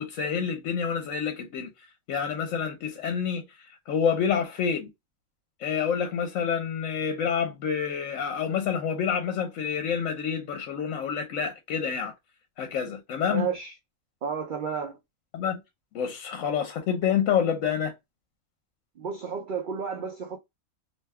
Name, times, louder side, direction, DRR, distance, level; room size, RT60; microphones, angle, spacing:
voice 1, 0.0-1.7 2.1-4.9 5.6-12.1 12.6-13.5 15.3-15.6 15.9-17.9, left 7 dB, 75° left, 0.9 m, -28 dB
voice 2, 13.3-13.7 14.2-15.0 19.0-20.4, right 6 dB, 90° right, 0.4 m, -32 dB
2.6 x 2.2 x 3.3 m
omnidirectional pair, 1.4 m